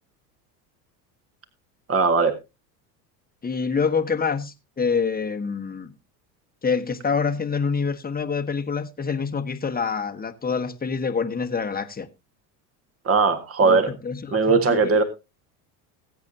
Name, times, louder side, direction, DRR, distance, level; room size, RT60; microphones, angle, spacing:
voice 1, 1.9-2.4 13.1-13.9 14.3-15.0, right 4 dB, 30° right, 1.8 m, -19 dB
voice 2, 3.4-5.9 6.6-12.1 13.6-14.8, left 5 dB, 20° left, 1.4 m, -26 dB
20.0 x 8.3 x 2.7 m
hypercardioid pair, 90°, 49 cm